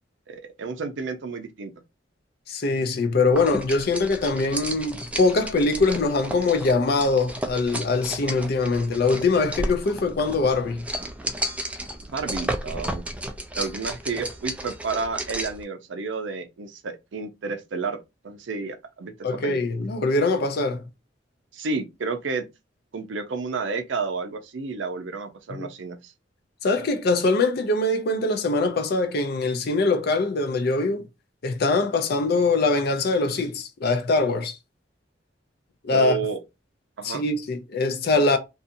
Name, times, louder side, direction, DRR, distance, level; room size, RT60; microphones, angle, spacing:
voice 1, 0.3-1.7 12.1-13.0 13.5-18.0 18.2-19.6 21.5-22.5 22.9-26.1 35.9-36.4 37.0-37.2, right 4 dB, 90° right, 0.5 m, -31 dB
voice 2, 2.5-10.9 19.2-20.8 25.5-25.7 26.6-31.1 31.4-34.6 35.8-36.2 37.0-38.4, left 3 dB, 60° left, 0.5 m, -23 dB
sound 1, 3.4-15.6, right 1 dB, 5° right, 0.3 m, -33 dB
2.6 x 2.3 x 2.6 m
head